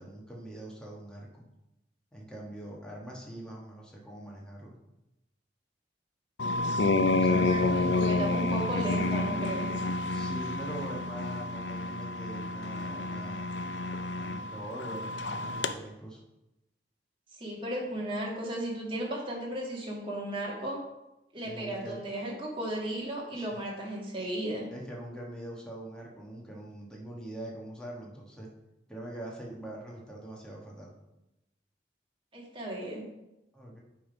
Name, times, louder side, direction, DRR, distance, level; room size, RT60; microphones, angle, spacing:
voice 1, 0.0-1.4 2.1-4.8 7.1-8.0 10.1-13.5 14.2-16.2 21.4-22.0 23.3-23.6 24.7-28.5 28.9-30.9 33.5-33.8, right 1 dB, 5° left, -3 dB, 1.4 m, -43 dB
sound 1, 6.4-15.7, left 2 dB, 80° left, 0.5 m, -29 dB
voice 2, 7.5-9.7 17.4-20.8 21.3-24.7 32.3-33.0, right 1 dB, 30° right, -3 dB, 1.8 m, -35 dB
8.6 x 3.7 x 5.1 m, 0.93 s
head